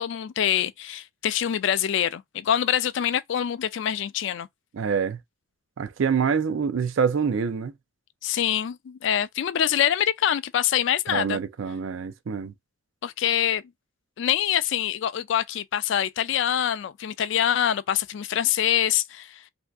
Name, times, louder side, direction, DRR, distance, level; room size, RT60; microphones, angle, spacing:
voice 1, 0.0-4.5 8.2-11.4 13.0-13.6 14.2-19.4, left 10 dB, 60° left, 0.3 m, -25 dB
voice 2, 4.7-5.2 5.8-7.7 11.1-12.5, right 6 dB, 70° right, 0.4 m, -26 dB
2.7 x 2.3 x 3.3 m
head